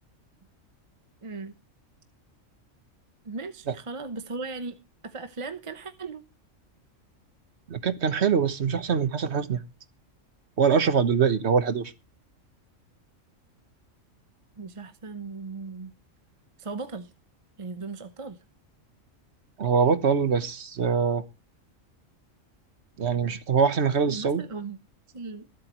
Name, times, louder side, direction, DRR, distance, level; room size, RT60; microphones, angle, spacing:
voice 1, 1.2-1.5 3.2-4.8 5.0-6.2 14.6-15.9 16.6-17.1 17.6-18.4 24.0-24.8 25.1-25.5, right 4 dB, 30° right, 0.8 m, -37 dB
voice 2, 7.7-9.6 10.6-11.9 19.6-21.2 23.0-24.4, right 6 dB, 60° right, 1.4 m, -23 dB
23.0 x 8.3 x 3.1 m
omnidirectional pair, 1.3 m